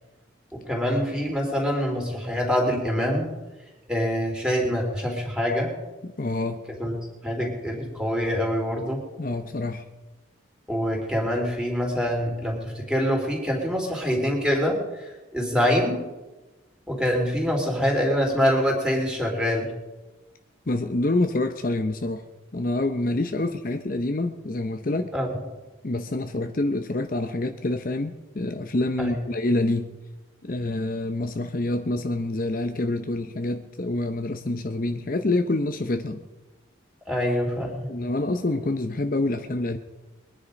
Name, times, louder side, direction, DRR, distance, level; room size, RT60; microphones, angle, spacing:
voice 1, 0.5-3.3 3.9-5.7 6.7-9.0 10.7-16.1 16.9-19.7 25.1-25.4 29.0-29.1 37.1-37.9, equal, 5° right, -1 dB, 3.3 m, -25 dB
voice 2, 6.0-6.7 9.2-9.9 20.7-22.2 22.5-25.1 25.8-30.0 30.4-36.3 37.9-39.8, left 2 dB, 45° left, 7 dB, 0.7 m, -27 dB
22.5 x 9.9 x 5.1 m, 1.1 s
head